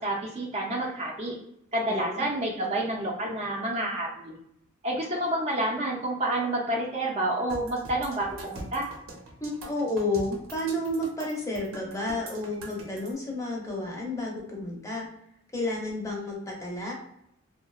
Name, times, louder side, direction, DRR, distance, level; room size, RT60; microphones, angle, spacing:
voice 1, 0.0-1.4 1.7-4.3 4.8-8.9, right 1 dB, 30° right, -2 dB, 0.5 m, -29 dB
voice 2, 1.9-2.3 9.4-15.1 15.5-16.9, left 1 dB, 15° left, -2 dB, 0.6 m, -31 dB
sound 1, 7.5-13.1, right 2 dB, 75° right, 0.6 m, -43 dB
2.8 x 2.1 x 2.3 m, 0.76 s
head